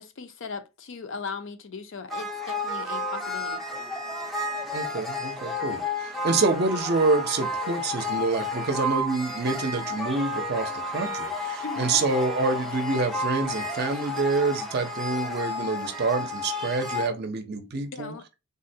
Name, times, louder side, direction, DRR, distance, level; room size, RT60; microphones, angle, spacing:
voice 1, 0.0-3.6 11.6-12.0 17.9-18.2, left 4 dB, 55° left, 0.5 m, -38 dB
sound 1, 2.1-17.1, left 2 dB, ahead, 0.4 m, -31 dB
voice 2, 4.7-18.1, right 3 dB, 45° right, 0.5 m, -27 dB
3.6 x 2.1 x 2.6 m
head